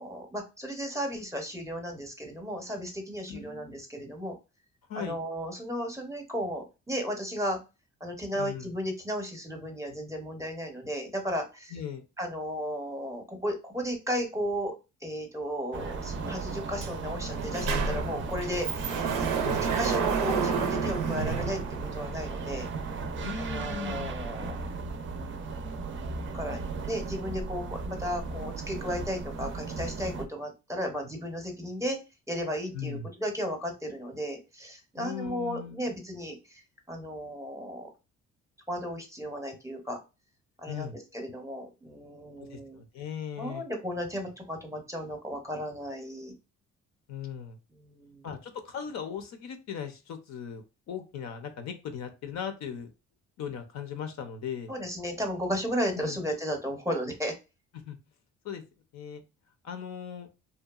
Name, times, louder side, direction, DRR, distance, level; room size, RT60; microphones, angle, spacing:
voice 1, 0.0-4.4 4.9-7.6 8.0-11.8 12.2-14.7 15.0-19.3 19.8-21.6 21.9-22.7 23.4-24.6 26.3-32.0 32.3-37.9 38.7-40.0 40.6-42.8 43.4-46.4 47.7-48.3 54.7-57.3, equal, 10° right, 3 dB, 0.7 m, -34 dB
voice 2, 3.3-3.8 4.9-5.2 8.4-8.7 11.7-12.0 19.4-19.6 23.2-24.1 32.7-33.1 35.0-35.9 40.7-40.9 42.4-42.6 42.9-43.6 47.1-47.6 48.2-52.9 53.4-54.7 56.0-56.2 57.9-58.0 58.4-58.6 58.9-59.2 59.6-60.3, left 7 dB, 65° left, 7 dB, 0.6 m, -38 dB
sound 1, 15.7-30.2, right 4 dB, 40° right, 0.4 m, -36 dB
Sliding door, 16.8-16.9 17.2-22.2, right 6 dB, 90° right, 0.5 m, -30 dB
2.8 x 2.2 x 2.3 m, 0.28 s
cardioid pair, 90°, 30 cm